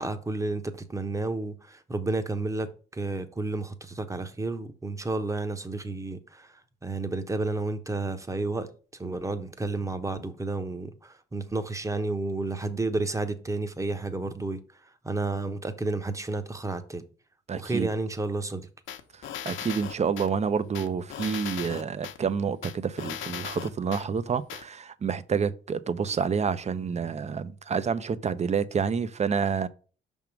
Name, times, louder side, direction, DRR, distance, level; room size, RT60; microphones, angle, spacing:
voice 1, 0.0-6.5 6.8-8.7 8.9-14.6 15.0-17.0 17.5-18.7, right 2 dB, 15° right, 1.0 m, -31 dB
voice 2, 17.5-17.9 19.1-29.7, right 6 dB, 35° right, 0.6 m, -28 dB
sound 1, 18.9-20.3 20.7-22.2 22.6-24.0 24.5-24.6, left 10 dB, 80° left, 0.9 m, -37 dB
5.9 x 3.6 x 5.9 m
cardioid pair, 90°, 20 cm